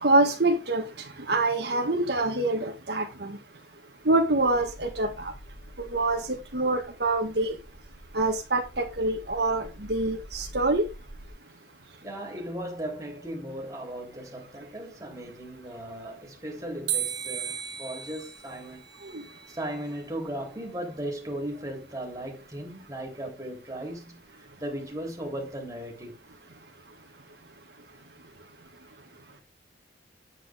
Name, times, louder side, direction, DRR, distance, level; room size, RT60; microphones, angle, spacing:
voice 1, 0.0-0.8 1.2-3.4 4.1-5.3 5.8-7.6 8.1-10.9 19.0-19.2, right 2 dB, 65° right, 1.8 m, -25 dB
sound 1, 4.0-11.3, equal, 25° left, 6.3 m, -47 dB
voice 2, 12.0-19.0 19.5-26.2, right 1 dB, 20° right, 3.6 m, -37 dB
sound 2, 16.9-20.0, right 10 dB, 90° right, 1.9 m, -35 dB
9.6 x 9.2 x 3.7 m
head